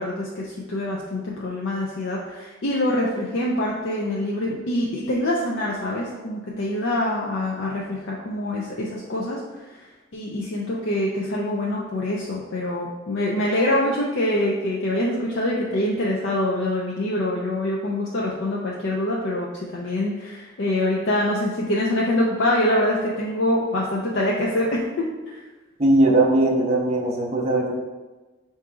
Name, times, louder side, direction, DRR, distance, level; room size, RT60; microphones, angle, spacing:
voice 1, 0.0-9.4 10.1-24.8 25.3-25.4, left 1 dB, 70° left, -4 dB, 0.5 m, -25 dB
voice 2, 25.8-27.7, right 2 dB, 35° right, -2 dB, 0.7 m, -19 dB
3.7 x 2.7 x 4.7 m, 1.2 s
head